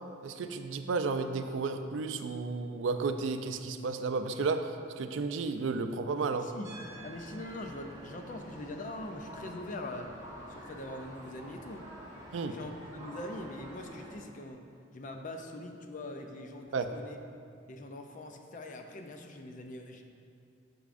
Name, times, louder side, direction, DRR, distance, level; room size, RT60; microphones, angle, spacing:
voice 1, 0.2-6.5 12.3-12.6 16.7-16.9, right 4 dB, 75° right, 8 dB, 0.4 m, -33 dB
voice 2, 6.3-6.7 7.0-10.1 10.5-11.9 12.5-14.6 14.9-17.2 17.7-20.0, left 1 dB, 40° left, 4 dB, 0.4 m, -42 dB
sound 1, 6.6-14.1, right 1 dB, 20° right, 1.6 m, -48 dB
8.2 x 6.1 x 2.5 m, 2.4 s
head